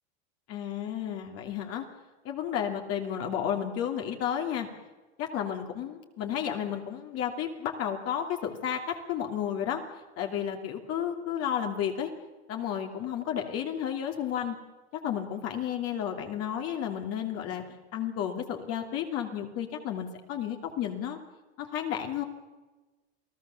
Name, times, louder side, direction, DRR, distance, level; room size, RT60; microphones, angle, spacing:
voice 1, 0.5-1.8 2.2-4.7 5.2-9.8 10.2-12.1 12.5-14.6 15.0-17.6 17.9-21.2 21.6-22.2, left 9 dB, 45° left, 3 dB, 2.7 m, -32 dB
28.5 x 17.5 x 7.0 m, 1.2 s
supercardioid pair, 125°, 33 cm